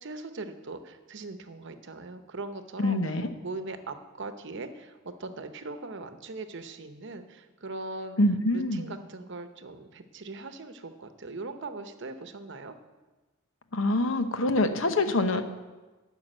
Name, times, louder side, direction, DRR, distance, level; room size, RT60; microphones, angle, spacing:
voice 1, 0.0-3.0 3.4-8.2 8.5-12.8, right 3 dB, 60° right, 9 dB, 0.8 m, -40 dB
voice 2, 2.8-3.3 8.2-8.9 13.7-15.4, left 2 dB, 70° left, 8 dB, 0.9 m, -25 dB
11.5 x 5.9 x 8.9 m, 1.2 s
head